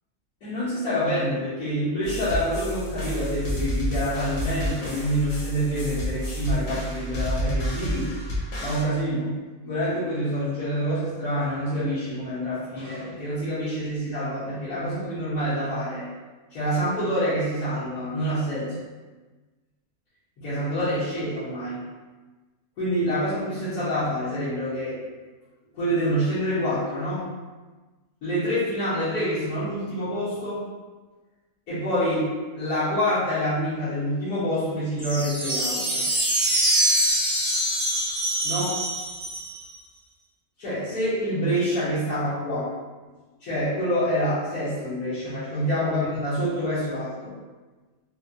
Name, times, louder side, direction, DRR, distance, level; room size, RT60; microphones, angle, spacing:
voice 1, 0.4-8.1 8.6-9.3 9.6-16.1 16.5-18.9 20.4-21.8 22.8-25.0 25.7-27.3 28.2-30.6 31.7-36.0 38.4-38.7 40.6-42.7 43.4-47.3, equal, 85° left, -15 dB, 1.7 m, -27 dB
sound 1, 2.0-8.8, equal, 60° left, 1.3 m, -30 dB
sound 2, 35.0-39.7, right 1 dB, 25° right, 0.8 m, -24 dB
4.2 x 2.3 x 2.6 m, 1.3 s
omnidirectional pair, 1.6 m